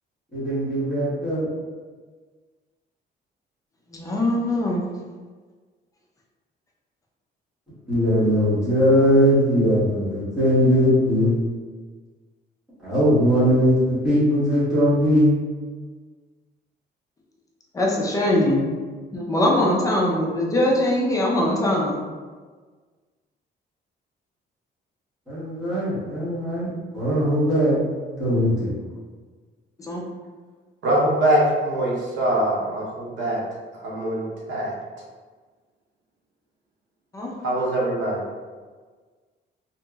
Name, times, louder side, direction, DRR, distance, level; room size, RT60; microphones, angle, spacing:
voice 1, 0.3-1.5 7.9-11.4 12.8-15.3 25.3-27.8 28.2-28.7, equal, 5° right, -13 dB, 1.3 m, -20 dB
voice 2, 3.9-4.9 17.7-18.7 19.1-22.0 29.8-30.1 37.1-37.3, left 1 dB, 20° left, -3 dB, 0.4 m, -22 dB
voice 3, 30.8-33.4 33.8-34.7 37.4-38.2, right 1 dB, 85° right, -3 dB, 0.8 m, -23 dB
2.9 x 2.8 x 2.3 m, 1.5 s
cardioid pair, 170°, 18 cm